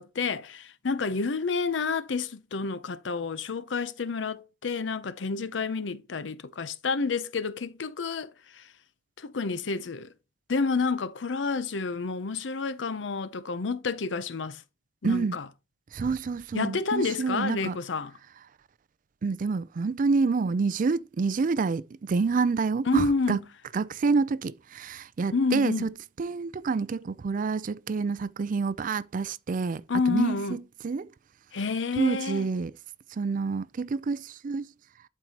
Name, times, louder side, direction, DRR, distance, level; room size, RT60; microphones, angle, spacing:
voice 1, 0.0-8.7 9.2-10.1 10.5-14.6 15.0-15.5 16.5-18.1 22.8-23.4 25.3-25.9 29.9-30.6 31.5-32.5, left 4 dB, 85° left, 0.6 m, -29 dB
voice 2, 15.0-15.4 15.9-17.8 19.2-23.4 23.7-25.9 26.2-31.1 32.0-32.7 33.1-34.7, right 4 dB, 45° right, 0.4 m, -28 dB
11.5 x 4.7 x 2.9 m
head